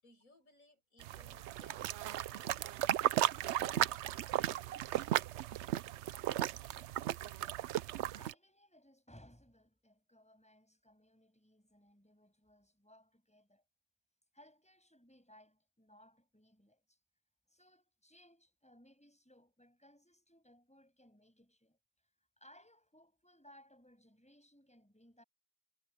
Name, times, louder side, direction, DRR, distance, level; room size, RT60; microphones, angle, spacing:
voice 1, 0.0-3.0, left 2 dB, 80° left, 7.7 m, -64 dB
sound 1, 1.0-8.3, right 13 dB, 65° right, 0.8 m, -35 dB
voice 2, 7.2-13.6 14.3-17.0 17.5-21.8 22.4-25.2, equal, 5° left, 6.8 m, -64 dB
omnidirectional pair, 1.4 m